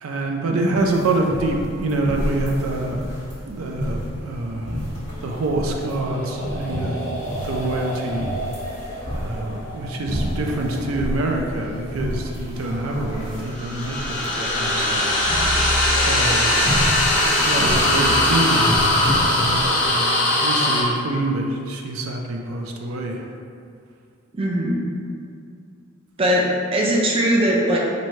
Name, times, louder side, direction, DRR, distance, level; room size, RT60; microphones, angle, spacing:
voice 1, 0.0-3.0 3.5-4.8 5.2-8.3 9.1-15.6 16.0-16.5 17.4-23.3, right 2 dB, 85° right, 1 dB, 0.4 m, -26 dB
voice 2, 0.5-1.0 24.3-24.8 26.2-27.8, equal, 25° right, -3 dB, 0.4 m, -20 dB
sound 1, 0.7-19.9, equal, 60° right, 1.4 m, -29 dB
sound 2, 5.6-10.8 13.3-20.8, left 1 dB, 40° left, 0.6 m, -22 dB
3.1 x 2.6 x 4.2 m, 2.3 s
head